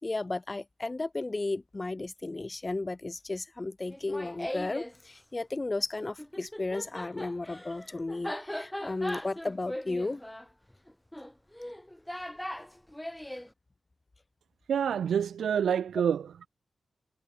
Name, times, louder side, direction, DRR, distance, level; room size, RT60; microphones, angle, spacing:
voice 1, 0.0-10.2, left 2 dB, 30° left, 5.1 m, -34 dB
Laughter, 3.9-5.0 6.2-13.5, left 1 dB, 10° left, 4.8 m, -39 dB
voice 2, 14.7-16.5, right 8 dB, 90° right, 1.1 m, -27 dB
cardioid pair, 55°, 0 cm